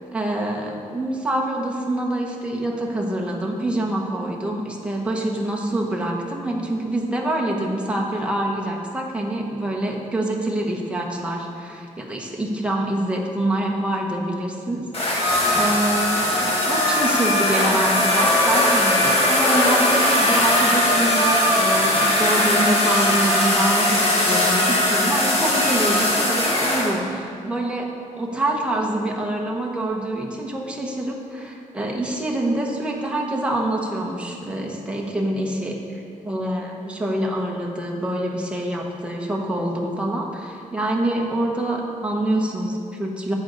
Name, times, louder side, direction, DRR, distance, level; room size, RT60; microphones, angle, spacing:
voice 1, 0.0-27.9 28.2-43.3, right 1 dB, 10° right, -1 dB, 1.1 m, -26 dB
sound 1, 14.9-26.9, left 1 dB, 45° left, 1.7 m, -19 dB
10.5 x 8.5 x 4.0 m, 2.4 s
wide cardioid pair, 170°, 14 cm